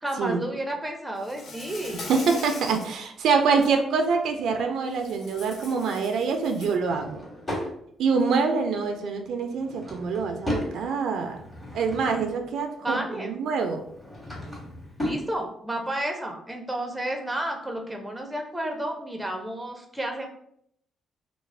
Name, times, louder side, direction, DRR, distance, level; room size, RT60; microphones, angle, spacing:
voice 1, 0.0-2.1 12.8-13.3 15.0-20.3, right 1 dB, 10° right, 2 dB, 0.5 m, -31 dB
Insect, 1.2-2.9 3.4-3.7 4.9-6.8, left 3 dB, 65° left, 0.5 m, -41 dB
voice 2, 2.1-7.2 8.0-11.4 11.7-13.8, right 5 dB, 75° right, 5 dB, 0.3 m, -25 dB
Drawer open or close / Wood, 6.8-7.7 9.4-10.7 11.3-12.4 13.8-15.3, left 1 dB, 15° left, 1.2 m, -34 dB
2.3 x 2.0 x 3.2 m, 0.71 s
cardioid pair, 90°, 0 cm